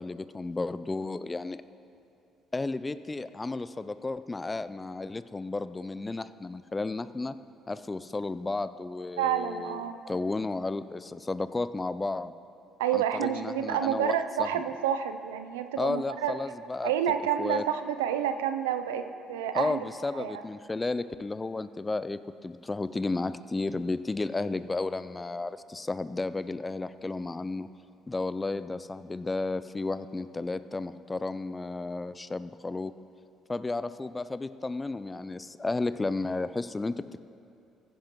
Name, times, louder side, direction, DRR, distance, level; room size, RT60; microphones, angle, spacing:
voice 1, 0.0-1.6 2.5-7.4 7.7-12.3 12.9-14.5 15.8-16.9 17.4-17.6 19.5-27.7 28.1-32.9 33.5-37.2, left 3 dB, 25° left, 14 dB, 0.4 m, -33 dB
voice 2, 9.2-10.0 12.8-16.3 16.8-19.8 20.1-20.4, right 9 dB, 90° right, 9 dB, 0.4 m, -29 dB
15.5 x 10.0 x 3.1 m, 2.7 s
hypercardioid pair, 55°, 0 cm